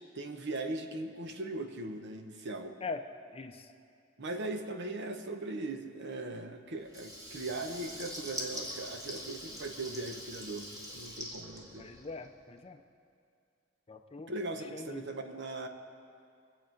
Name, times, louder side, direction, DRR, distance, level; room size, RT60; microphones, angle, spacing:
voice 1, 0.1-2.8 4.2-11.9 14.3-15.7, right 2 dB, 60° right, 6 dB, 1.0 m, -39 dB
voice 2, 3.3-3.7 11.8-12.8 13.9-14.3 14.7-15.1, left 4 dB, 30° left, 7 dB, 0.6 m, -42 dB
Water tap faucet / Liquid, 6.8-12.4, equal, 20° right, 1.7 m, -43 dB
22.5 x 7.7 x 5.1 m, 2.4 s
head